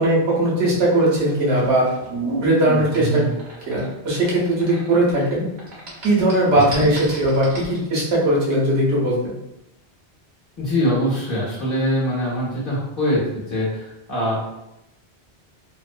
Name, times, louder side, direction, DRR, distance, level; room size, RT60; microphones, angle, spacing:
voice 1, 0.0-1.9 2.4-3.2 3.7-5.4 6.0-9.3, right 1 dB, 85° right, -5 dB, 1.2 m, -19 dB
sound 1, 1.0-5.3 5.6-7.8, right 2 dB, 45° right, 0.9 m, -31 dB
voice 2, 3.0-3.3 6.5-6.6 10.6-14.4, equal, 55° left, -6 dB, 1.1 m, -23 dB
3.0 x 2.1 x 2.5 m, 0.87 s
omnidirectional pair, 1.1 m